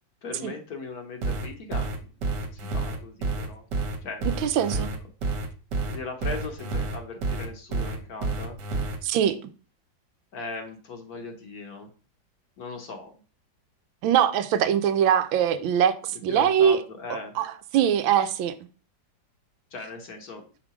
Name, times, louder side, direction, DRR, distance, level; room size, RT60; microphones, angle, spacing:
voice 1, 0.2-3.6 4.0-4.3 4.5-4.9 5.8-8.6 10.3-11.9 12.6-13.1 16.3-17.3 19.7-20.4, left 3 dB, 55° left, 1.3 m, -39 dB
sound 1, 1.2-9.0, right 3 dB, 65° right, 1.6 m, -29 dB
voice 2, 4.4-4.9 9.0-9.4 14.0-16.8 17.1-18.5, right 9 dB, 80° right, 1.4 m, -22 dB
5.8 x 3.6 x 4.9 m
omnidirectional pair, 2.1 m